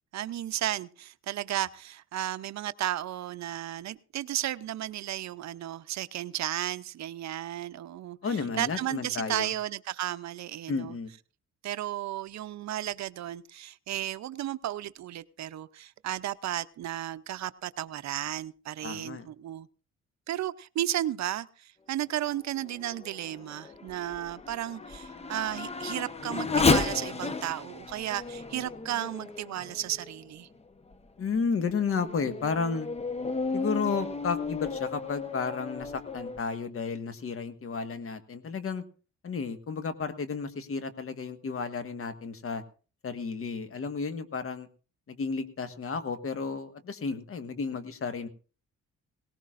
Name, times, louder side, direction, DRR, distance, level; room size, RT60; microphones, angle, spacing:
voice 1, 0.1-10.9 11.6-19.7 20.3-30.5, right 12 dB, 65° right, 0.7 m, -34 dB
voice 2, 8.2-9.5 10.7-11.1 18.8-19.3 31.2-32.9 33.5-38.8 39.2-42.6 43.0-44.7 45.1-48.3, left 5 dB, 50° left, 1.6 m, -32 dB
Race car auto racing / Accelerating revving vroom, 22.4-30.3 30.9-31.0 31.6-36.4, left 4 dB, 20° left, 1.0 m, -33 dB
18.5 x 18.5 x 2.5 m
cardioid pair, 110°, 29 cm